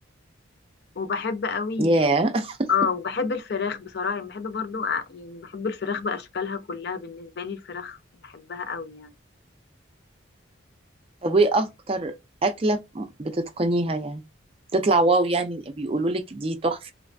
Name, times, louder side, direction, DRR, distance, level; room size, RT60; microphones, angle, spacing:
voice 1, 1.0-2.0 2.7-8.0 8.2-9.1, left 5 dB, 55° left, 0.4 m, -29 dB
voice 2, 1.8-2.7 11.2-12.1 12.4-14.2 14.7-16.9, right 2 dB, 30° right, 0.4 m, -23 dB
3.1 x 2.1 x 2.5 m
head